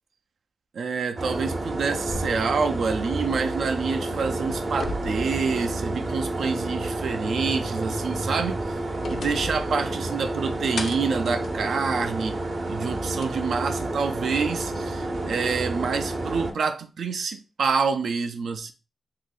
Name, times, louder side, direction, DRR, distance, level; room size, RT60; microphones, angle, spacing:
voice 1, 0.7-8.6 9.1-12.4 12.7-18.7, right 5 dB, 80° right, 0.4 m, -27 dB
sound 1, 1.2-16.5, right 2 dB, 35° right, 0.6 m, -30 dB
sound 2, 2.1-3.8 4.2-6.2 6.6-6.7 8.3-10.4 10.8-12.4 13.2-13.3 14.4-14.5, left 3 dB, 60° left, 0.4 m, -38 dB
2.7 x 2.5 x 3.8 m
wide cardioid pair, 130°, 0 cm